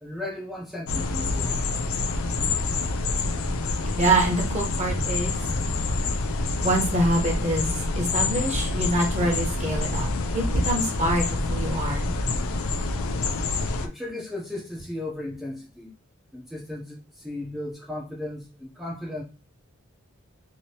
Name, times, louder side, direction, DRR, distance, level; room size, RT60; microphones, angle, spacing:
voice 1, 0.0-1.7 13.8-15.9 16.3-19.2, left 1 dB, ahead, 0.5 m, -35 dB
sound 1, 0.9-13.9, left 3 dB, 70° left, 0.4 m, -27 dB
voice 2, 4.0-5.4 6.6-12.1, right 1 dB, 30° right, 1.0 m, -25 dB
3.0 x 2.7 x 2.8 m
head